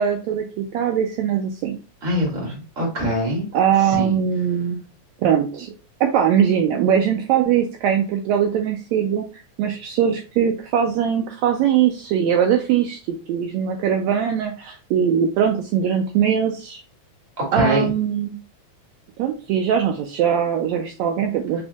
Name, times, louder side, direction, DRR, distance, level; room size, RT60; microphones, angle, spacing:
voice 1, 0.0-1.8 3.5-4.8 5.2-5.7 6.0-9.2 9.6-16.8 17.5-18.4 19.2-21.6, right 8 dB, 80° right, 3 dB, 1.7 m, -21 dB
voice 2, 2.0-3.5 3.9-4.1 17.4-17.9, equal, 30° right, -2 dB, 1.8 m, -23 dB
4.4 x 4.3 x 2.3 m, 0.33 s
omnidirectional pair, 3.3 m